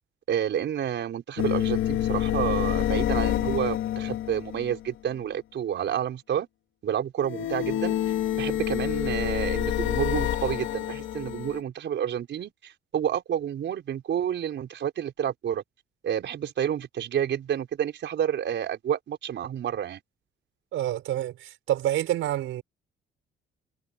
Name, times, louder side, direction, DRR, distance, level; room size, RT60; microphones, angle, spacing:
voice 1, 0.3-6.5 6.8-8.0 8.3-15.6 16.0-20.0, right 9 dB, 65° right, 5.0 m, -29 dB
sound 1, 1.4-4.9 7.2-11.6, left 12 dB, 80° left, 2.3 m, -27 dB
voice 2, 20.7-22.6, right 13 dB, 85° right, 5.2 m, -28 dB
cardioid pair, 90°, 20 cm